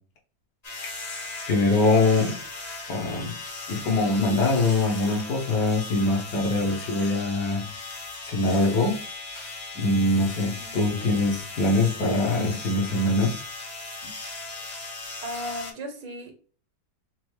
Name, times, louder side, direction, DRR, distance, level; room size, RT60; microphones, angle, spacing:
sound 1, 0.6-15.7, left 3 dB, 30° left, 0.8 m, -38 dB
voice 1, 1.5-2.3 2.9-3.3 3.7-7.6 8.2-9.0 9.7-13.3, left 2 dB, 65° left, 0 dB, 1.7 m, -23 dB
voice 2, 15.2-16.4, equal, 80° right, 3 dB, 1.7 m, -36 dB
5.8 x 2.1 x 3.2 m, 0.41 s
omnidirectional pair, 2.0 m